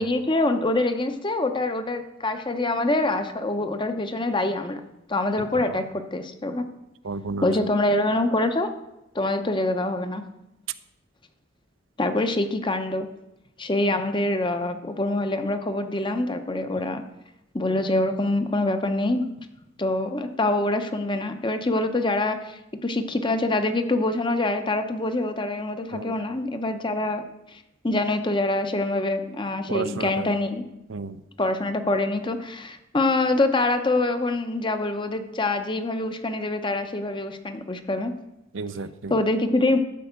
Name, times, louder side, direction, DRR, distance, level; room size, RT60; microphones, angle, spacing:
voice 1, 0.0-4.8 5.1-6.7 7.4-8.7 9.1-10.2 12.0-13.1 13.6-17.0 17.5-19.3 19.8-27.2 27.5-30.6 31.4-38.1 39.1-39.8, left 2 dB, 25° left, 8 dB, 0.8 m, -25 dB
voice 2, 5.4-5.8 7.0-7.5 25.9-26.1 29.7-30.3 30.9-31.2 38.5-39.2, right 4 dB, 70° right, 12 dB, 0.6 m, -33 dB
12.5 x 4.8 x 8.1 m, 0.90 s
head